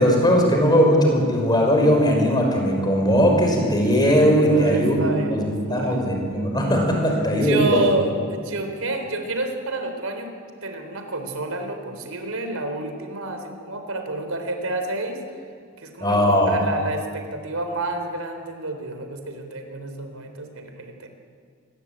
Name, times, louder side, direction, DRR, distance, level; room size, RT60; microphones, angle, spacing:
voice 1, 0.0-7.9 16.0-16.6, equal, 20° left, 1 dB, 5.4 m, -19 dB
voice 2, 4.5-6.0 7.3-10.3 10.6-15.2 15.8-21.1, right 2 dB, 75° right, 6 dB, 3.9 m, -29 dB
28.0 x 20.5 x 8.9 m, 2.1 s
head